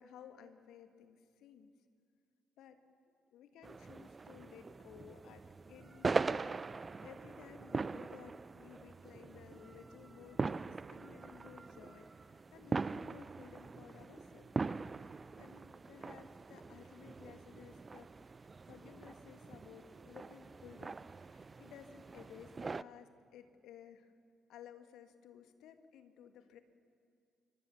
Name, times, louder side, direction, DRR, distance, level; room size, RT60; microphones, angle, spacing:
voice 1, 0.0-1.7 2.6-2.8 3.3-14.5 15.4-18.1 18.7-24.1 24.5-26.6, left 8 dB, 60° left, 8 dB, 1.9 m, -56 dB
sound 1, 3.6-22.8, right 4 dB, 30° right, 0.5 m, -42 dB
26.5 x 25.0 x 7.1 m, 2.2 s
figure-of-eight pair, 40°, 0 cm